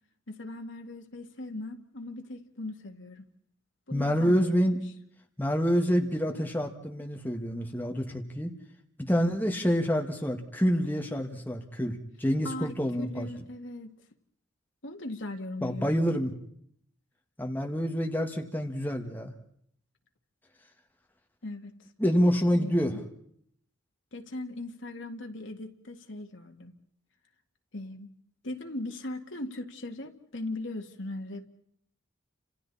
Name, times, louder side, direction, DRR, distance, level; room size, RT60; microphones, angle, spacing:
voice 1, 0.3-3.3 3.9-4.8 12.4-13.9 14.8-15.9 21.4-21.7 22.2-23.0 24.1-26.7 27.7-28.1 28.4-31.5, left 2 dB, 65° left, 2.0 m, -39 dB
voice 2, 3.9-4.8 5.4-8.5 9.0-13.3 15.6-16.3 17.4-19.3 22.0-23.0, equal, 10° left, 1.9 m, -27 dB
30.0 x 27.5 x 4.2 m
head